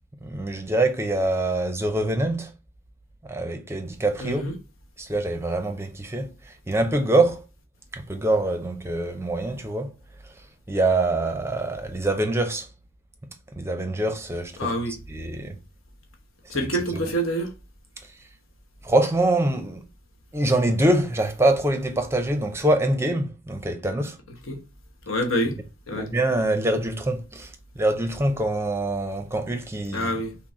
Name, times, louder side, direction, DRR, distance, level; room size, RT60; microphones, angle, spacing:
voice 1, 0.2-2.5 3.2-4.4 5.0-7.5 7.9-9.9 10.2-10.4 10.7-12.7 13.5-14.7 15.1-15.6 16.5-16.7 16.9-17.0 18.0-18.1 18.8-19.8 20.3-24.2 25.9-30.1, right 2 dB, 15° right, 0.5 m, -24 dB
voice 2, 4.2-4.5 14.6-15.0 16.5-17.5 24.5-24.6 25.0-25.6 25.9-26.1 29.9-30.4, equal, 85° left, 1.1 m, -26 dB
6.0 x 2.0 x 4.2 m
head